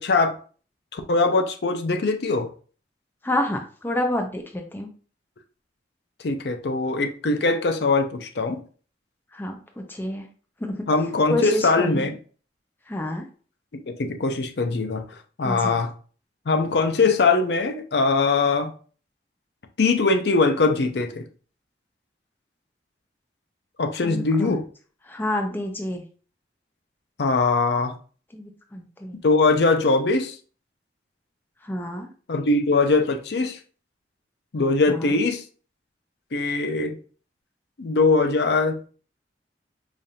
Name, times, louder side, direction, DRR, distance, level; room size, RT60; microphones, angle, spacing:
voice 1, 0.0-0.4 0.9-2.5 6.2-8.6 10.9-12.2 13.9-15.0 15.4-15.9 16.5-18.7 19.8-21.2 23.8-24.6 27.2-28.0 29.2-30.4 32.3-33.6 34.5-35.4 36.3-37.0 37.8-38.8, left 3 dB, 70° left, 0.5 m, -21 dB
voice 2, 3.2-4.9 9.3-10.3 10.6-10.9 11.3-12.1 12.9-13.3 15.4-15.8 24.0-24.6 25.0-26.0 28.3-29.2 31.6-32.1 34.9-35.1, left 1 dB, 10° left, 0.4 m, -29 dB
5.0 x 2.5 x 2.8 m
head